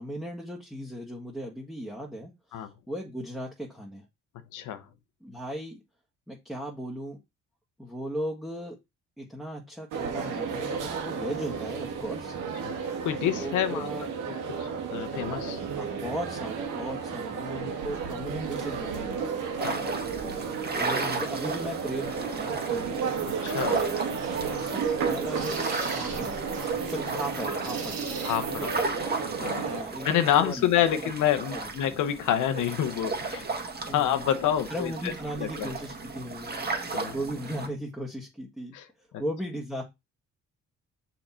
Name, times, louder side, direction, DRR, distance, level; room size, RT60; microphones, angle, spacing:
voice 1, 0.0-4.0 5.2-5.8 6.3-7.2 7.8-8.8 9.2-12.4 13.3-14.1 15.8-19.3 19.6-19.9 20.7-23.0 23.8-26.4 26.8-28.1 28.5-28.7 29.6-31.0 31.5-31.7 33.9-34.3 34.7-36.6 37.1-39.8, equal, ahead, 1.7 m, -37 dB
voice 2, 4.5-4.8 12.6-12.7 13.0-13.9 14.6-15.6 19.6-19.8 20.2-20.4 23.4-23.8 28.2-28.7 29.4-29.7 30.0-33.5 33.9-35.1 35.6-35.7 36.9-37.1 38.7-38.8 39.1-39.2, left 10 dB, 85° left, 0.9 m, -27 dB
sound 1, 9.9-29.8, right 6 dB, 90° right, 1.6 m, -33 dB
sound 2, 19.6-37.7, right 3 dB, 30° right, 1.8 m, -35 dB
sound 3, 23.0-28.8, right 5 dB, 65° right, 2.0 m, -42 dB
6.6 x 4.1 x 4.3 m
cardioid pair, 90°, 30 cm